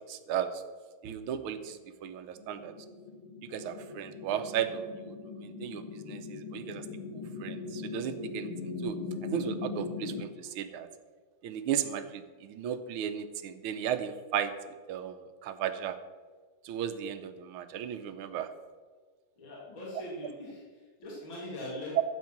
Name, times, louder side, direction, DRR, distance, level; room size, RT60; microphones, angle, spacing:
voice 1, 0.1-0.6 1.0-2.7 3.5-6.8 7.1-8.5 8.8-9.0 9.3-10.9 11.4-14.5 14.9-15.2 15.4-16.0 16.6-18.5 21.9-22.0, right 9 dB, 80° right, 9 dB, 1.7 m, -35 dB
sound 1, 2.4-10.2, left 4 dB, 80° left, 2.1 m, -40 dB
voice 2, 19.4-22.0, left 1 dB, 60° left, -5 dB, 3.3 m, -41 dB
12.5 x 8.1 x 5.9 m, 1.5 s
omnidirectional pair, 2.4 m